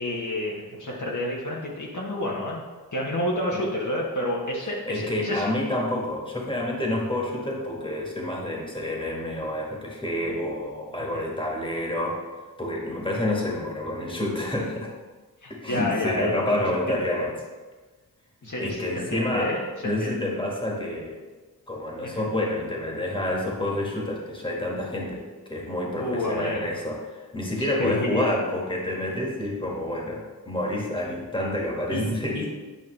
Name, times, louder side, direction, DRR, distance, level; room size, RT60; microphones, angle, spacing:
voice 1, 0.0-2.6 2.9-5.5 11.0-11.3 15.4-17.3 18.4-20.2 22.0-22.3 26.0-26.7 27.8-28.3 31.9-32.5, left 1 dB, 55° left, -3 dB, 1.3 m, -30 dB
voice 2, 4.9-12.2 12.6-14.9 15.5-17.3 18.6-19.5 19.8-21.2 21.7-25.2 25.5-27.0 27.3-32.4, left 1 dB, 15° left, -2 dB, 1.8 m, -28 dB
9.3 x 5.3 x 3.3 m, 1.3 s
cardioid pair, 55°, 36 cm